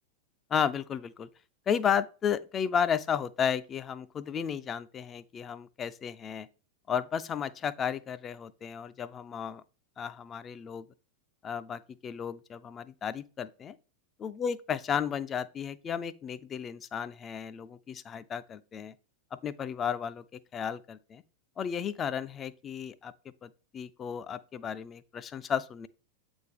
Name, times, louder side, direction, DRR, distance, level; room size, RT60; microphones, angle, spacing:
voice 1, 0.5-1.3 1.7-6.5 6.9-9.6 10.0-10.9 11.4-13.7 14.2-18.9 19.3-21.2 21.6-23.1 23.4-25.9, left 7 dB, 25° left, 0.3 m, -33 dB
7.8 x 3.5 x 3.5 m
figure-of-eight pair, 90°, 0 cm